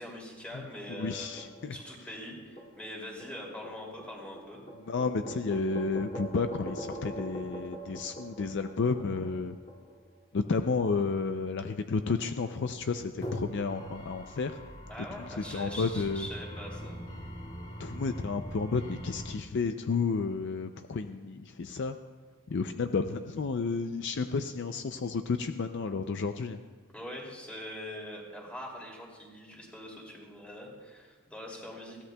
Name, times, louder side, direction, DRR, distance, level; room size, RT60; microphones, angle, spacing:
voice 1, 0.0-4.6 14.9-17.0 26.9-32.0, left 1 dB, 5° left, -2 dB, 2.5 m, -43 dB
voice 2, 0.9-1.8 4.9-9.6 10.3-14.5 15.2-16.3 17.8-22.0 22.5-26.6, left 4 dB, 55° left, 8 dB, 0.4 m, -31 dB
sound 1, 1.4-2.0 2.6-10.0 13.2-19.3, equal, 35° left, 2.2 m, -42 dB
21.0 x 16.0 x 2.3 m, 1.5 s
head